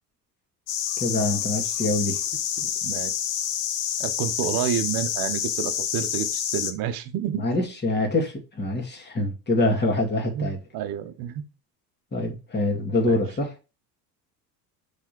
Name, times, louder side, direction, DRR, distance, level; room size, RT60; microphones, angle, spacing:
sound 1, 0.7-6.7, left 10 dB, 70° left, 1.0 m, -28 dB
voice 1, 1.0-2.2 7.3-10.6 12.1-13.7, left 2 dB, 20° left, 2.2 m, -25 dB
voice 2, 2.6-3.1 4.0-7.4 10.3-11.4 13.1-13.2, right 10 dB, 45° right, 1.1 m, -29 dB
5.8 x 3.7 x 4.4 m
hypercardioid pair, 70°, 47 cm